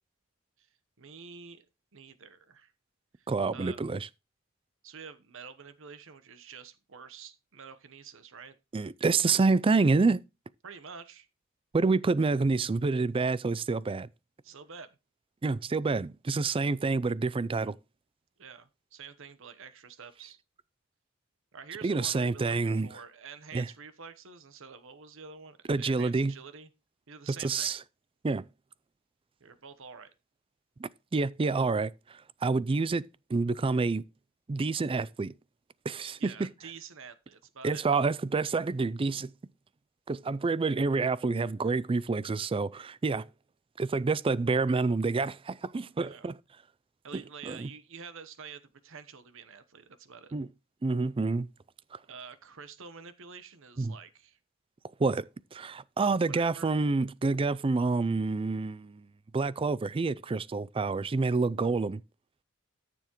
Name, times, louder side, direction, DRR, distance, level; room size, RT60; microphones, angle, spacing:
voice 1, 1.0-1.6 1.9-2.7 3.2-3.8 4.8-8.6 10.6-11.3 14.4-15.0 18.4-20.4 21.5-26.7 27.1-27.7 29.4-30.1 36.2-37.8 46.0-46.3 47.0-50.3 52.1-54.4 56.3-56.7, right 6 dB, 65° right, 1.0 m, -48 dB
voice 2, 3.3-4.1 8.7-10.2 11.7-14.1 15.4-17.7 21.8-22.9 23.5-23.7 25.7-26.3 27.4-27.8 28.2-28.4 30.8-31.9 32.4-33.0 33.3-34.0 34.5-35.3 35.9-36.5 37.6-39.3 40.1-43.3 43.8-46.4 47.1-47.2 47.5-47.7 50.3-50.5 50.8-51.5 53.8-53.9 55.0-55.2 55.5-59.1 59.3-62.0, right 3 dB, 25° right, 0.4 m, -28 dB
13.5 x 7.0 x 3.0 m
head